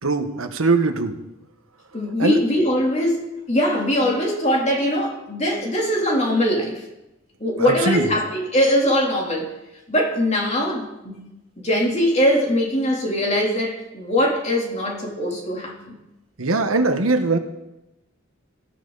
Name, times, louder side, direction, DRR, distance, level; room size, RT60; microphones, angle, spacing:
voice 1, 0.0-1.1 2.2-2.4 7.6-8.1 16.4-17.4, right 3 dB, 85° right, 6 dB, 1.3 m, -21 dB
voice 2, 1.9-6.8 7.4-9.5 9.9-11.3 11.6-16.0, equal, 35° left, -1 dB, 3.2 m, -21 dB
18.5 x 13.0 x 4.1 m, 0.95 s
head